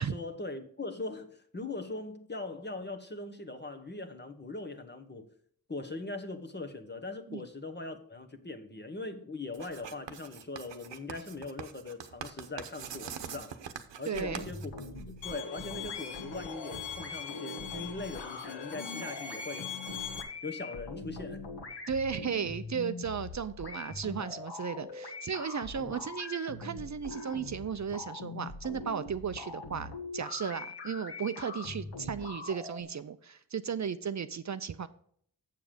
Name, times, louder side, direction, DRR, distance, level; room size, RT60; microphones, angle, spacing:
voice 1, 0.0-5.3 5.7-13.6 14.0-19.8 20.4-21.4, left 3 dB, 25° left, 1.2 m, -41 dB
Writing, 9.5-15.4, right 8 dB, 70° right, 1.0 m, -44 dB
sound 1, 14.1-32.8, left 3 dB, 60° left, 1.8 m, -43 dB
voice 2, 14.1-14.4 21.9-34.9, right 7 dB, 40° right, 0.6 m, -35 dB
Bowed string instrument, 15.2-20.2, left 6 dB, 80° left, 1.1 m, -42 dB
7.6 x 7.1 x 5.0 m
cardioid pair, 70°, 45 cm